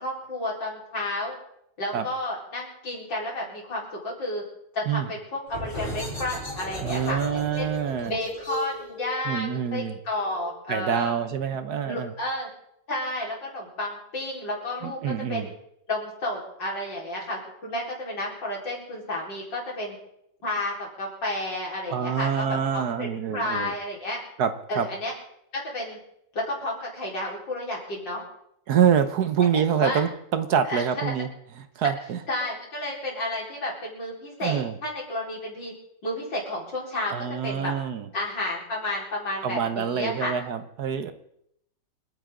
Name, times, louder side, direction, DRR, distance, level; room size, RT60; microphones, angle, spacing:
voice 1, 0.0-1.4 1.8-4.4 4.7-7.7 8.1-11.1 11.8-12.5 12.9-15.5 15.9-20.0 20.4-24.2 24.7-25.1 25.5-26.0 26.3-28.2 29.7-30.0 30.6-31.1 32.3-35.7 36.0-37.1 37.4-37.7 38.1-40.3, left 1 dB, 80° left, -3 dB, 5.2 m, -31 dB
sound 1, 5.5-10.9, left 1 dB, 40° left, 5.0 m, -37 dB
voice 2, 6.8-8.1 9.2-10.0 10.7-12.1 14.8-15.5 21.9-23.7 24.4-24.9 28.7-31.3 31.8-32.2 34.4-34.8 37.1-38.1 39.4-41.1, right 8 dB, 65° right, 10 dB, 1.4 m, -26 dB
28.0 x 10.0 x 3.8 m, 0.75 s
omnidirectional pair, 2.0 m